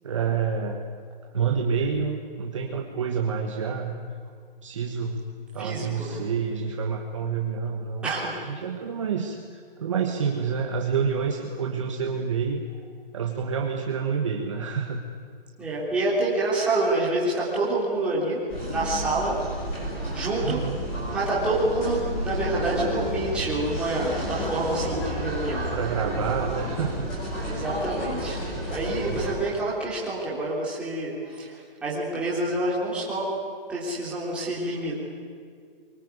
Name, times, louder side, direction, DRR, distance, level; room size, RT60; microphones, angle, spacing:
voice 1, 0.0-0.8 1.3-3.9 4.6-5.2 5.5-8.1 8.4-12.6 13.1-15.0 20.4-20.9 25.7-27.1 29.0-29.3, right 6 dB, 30° right, 2 dB, 1.5 m, -28 dB
voice 2, 5.6-6.2 8.0-8.4 15.6-18.4 18.7-19.4 20.1-20.6 21.1-25.7 27.5-28.4 28.7-31.5 31.8-33.4 33.7-35.1, right 2 dB, 5° right, -7 dB, 3.5 m, -27 dB
sound 1, 18.5-29.3, equal, 15° left, 5.9 m, -31 dB
23.5 x 23.5 x 9.6 m, 2.1 s
hypercardioid pair, 180°, 29 cm